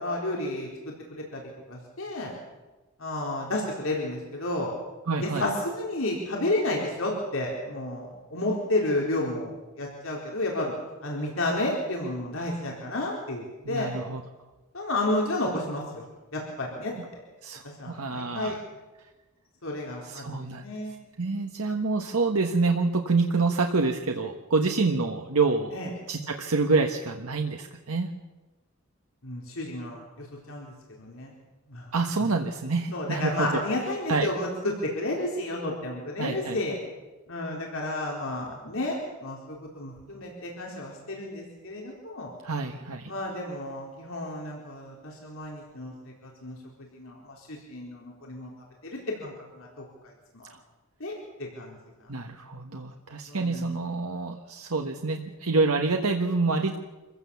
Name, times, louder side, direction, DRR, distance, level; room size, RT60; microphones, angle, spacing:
voice 1, 0.0-1.4 1.7-2.3 3.0-4.7 5.2-10.7 11.0-13.9 14.7-16.0 16.3-16.9 17.8-18.6 19.6-20.9 25.7-25.9 29.2-31.3 31.7-31.9 32.9-36.8 37.3-42.3 43.1-46.6 46.9-48.5 48.8-49.8 50.3-50.5 51.0-51.8 53.3-53.8, left 1 dB, 65° left, -1 dB, 4.2 m, -31 dB
voice 2, 5.1-5.4 13.6-14.2 17.0-17.1 17.4-18.6 20.0-20.6 21.2-25.8 26.1-28.1 31.9-33.6 34.1-34.3 36.2-36.6 42.4-43.1 50.5-50.6 52.1-56.8, right 3 dB, 90° right, 3 dB, 1.4 m, -27 dB
25.5 x 16.0 x 7.1 m, 1.2 s
head